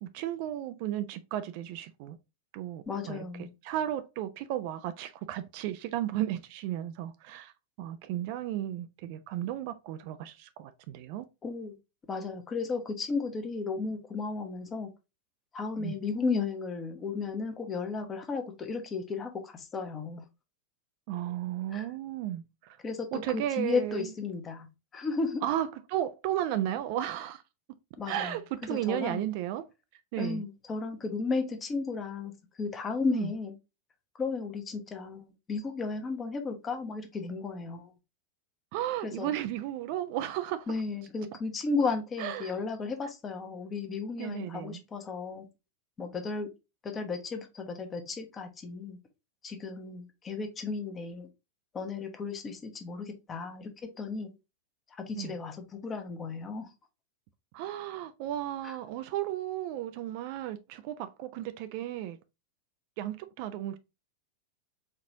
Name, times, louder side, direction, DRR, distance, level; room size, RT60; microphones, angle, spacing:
voice 1, 0.0-2.2 2.5-3.2 3.6-7.5 7.8-11.3 15.8-16.0 21.1-22.8 23.1-24.1 25.4-27.4 28.1-29.6 30.1-30.4 33.1-33.3 38.7-40.7 42.2-42.6 44.2-44.8 55.2-55.4 57.5-62.2 63.0-63.8, right 12 dB, 45° right, 0.3 m, -34 dB
voice 2, 2.9-3.5 11.4-11.8 12.1-14.9 15.5-20.2 21.7-21.8 22.8-24.7 24.9-25.4 28.0-28.4 28.7-29.2 30.2-32.3 32.6-33.5 34.2-37.9 39.0-39.3 40.7-45.4 46.0-46.5 46.8-49.0 49.4-51.3 51.7-54.3 54.9-56.7 58.6-58.7, left 4 dB, 20° left, 0.9 m, -34 dB
4.3 x 3.0 x 2.6 m
figure-of-eight pair, 90°, 0 cm